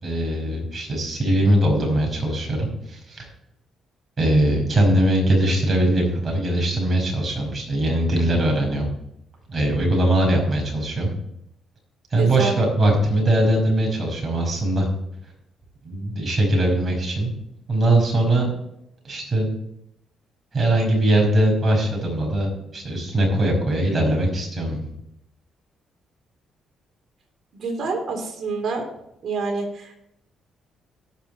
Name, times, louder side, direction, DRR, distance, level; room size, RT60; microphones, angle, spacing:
voice 1, 0.0-3.3 4.2-8.9 9.5-11.1 12.1-14.9 15.8-17.3 17.7-18.5 19.0-19.5 20.5-24.8, right 1 dB, 40° right, 0 dB, 5.3 m, -21 dB
voice 2, 12.2-12.6 27.6-28.9 29.2-30.1, right 4 dB, 55° right, 2 dB, 3.4 m, -27 dB
18.0 x 6.0 x 4.5 m, 0.80 s
cardioid pair, 90°, 0 cm